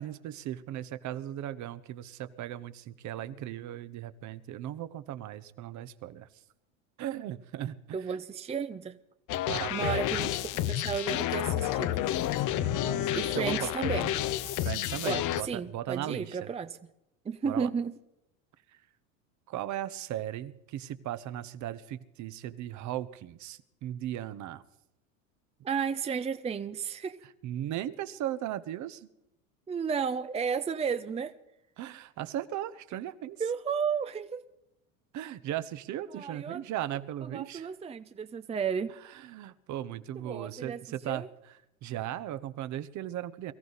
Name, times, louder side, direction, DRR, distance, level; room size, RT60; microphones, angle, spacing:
voice 1, 0.0-6.4 7.0-8.0 9.5-10.0 12.5-13.7 14.6-16.5 17.4-17.7 19.5-24.6 27.4-29.1 31.8-33.4 35.1-37.7 39.1-41.3 41.8-43.5, right 12 dB, 45° right, 1.1 m, -37 dB
voice 2, 7.9-9.0 9.7-12.0 13.1-14.1 15.0-16.8 17.2-17.9 25.6-27.2 29.7-31.3 33.4-34.4 36.1-36.6 37.2-38.9 40.2-40.8 41.0-41.3, right 6 dB, 15° right, 0.7 m, -33 dB
sound 1, 9.3-15.4, left 13 dB, 50° left, 1.0 m, -30 dB
23.5 x 14.0 x 4.1 m
hypercardioid pair, 100°, 40 cm